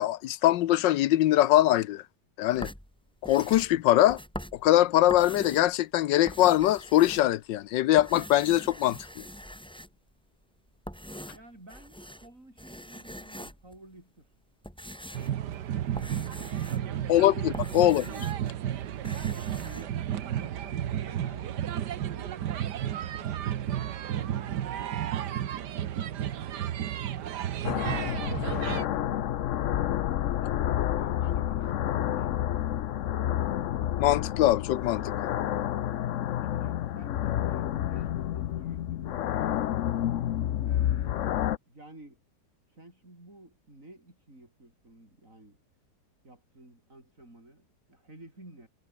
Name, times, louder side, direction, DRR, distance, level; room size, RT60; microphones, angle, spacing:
voice 1, 0.0-2.0 2.4-2.7 3.2-4.2 4.6-9.2 17.1-18.3 34.0-35.0, left 14 dB, 85° left, 1.4 m, -22 dB
sound 1, 2.5-5.8 6.1-7.6 7.9-10.1 10.7-12.3 12.6-13.8 14.3-18.6 18.8-19.9, equal, 5° left, 6.2 m, -43 dB
voice 2, 11.3-14.3 17.5-17.6 19.2-22.5 23.0-27.4 28.0-29.3 30.9-32.4 36.4-39.7 40.6-41.3 41.7-42.2 42.7-45.6 46.2-48.7, right 1 dB, 45° right, 8.6 m, -52 dB
sound 2, 15.1-28.9, right 10 dB, 70° right, 1.6 m, -32 dB
sound 3, 27.6-41.6, left 11 dB, 60° left, 0.8 m, -29 dB
omnidirectional pair, 1.9 m